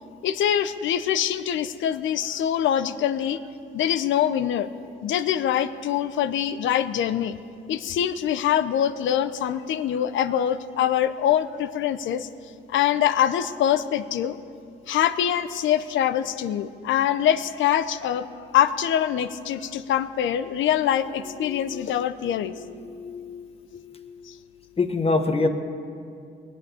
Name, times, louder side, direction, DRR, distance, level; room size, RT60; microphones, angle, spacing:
voice 1, 0.2-3.4 3.7-4.7 5.0-7.4 7.7-12.3 12.7-14.4 14.9-22.9 24.3-24.4, left 10 dB, 75° left, 13 dB, 0.7 m, -24 dB
voice 2, 21.4-21.8 22.8-24.1 24.8-25.5, left 3 dB, 30° left, 7 dB, 1.3 m, -27 dB
20.0 x 8.1 x 8.3 m, 2.4 s
cardioid pair, 90°, 20 cm